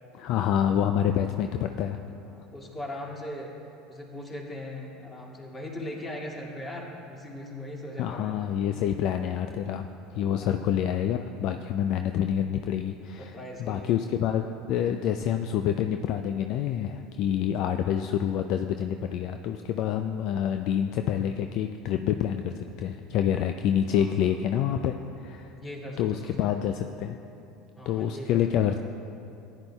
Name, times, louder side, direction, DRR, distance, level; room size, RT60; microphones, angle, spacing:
voice 1, 0.2-2.0 8.0-9.9 10.1-25.5 26.0-27.2 27.9-28.7, left 9 dB, 60° left, 7 dB, 0.3 m, -27 dB
voice 2, 2.2-3.6 3.9-8.3 10.3-10.6 13.2-13.9 23.9-24.1 24.8-24.9 25.5-26.6 27.8-28.4, left 1 dB, 25° left, -2 dB, 2.2 m, -39 dB
15.0 x 9.9 x 2.3 m, 2.8 s
hypercardioid pair, 75°, 0 cm